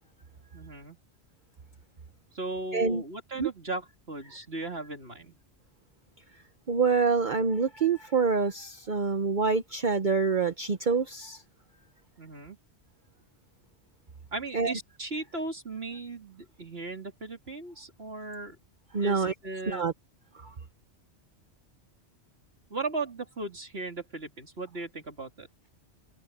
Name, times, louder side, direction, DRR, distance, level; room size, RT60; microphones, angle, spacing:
voice 1, 0.5-1.0 2.3-5.4 12.2-12.6 14.3-18.6 19.0-19.9 22.7-25.5, right 3 dB, 60° right, 3.7 m, -37 dB
voice 2, 2.7-3.0 3.4-3.5 6.7-11.4 14.5-14.8 18.9-19.3 19.7-19.9 20.4-20.5, right 5 dB, 45° right, 1.0 m, -26 dB
omnidirectional pair, 1.2 m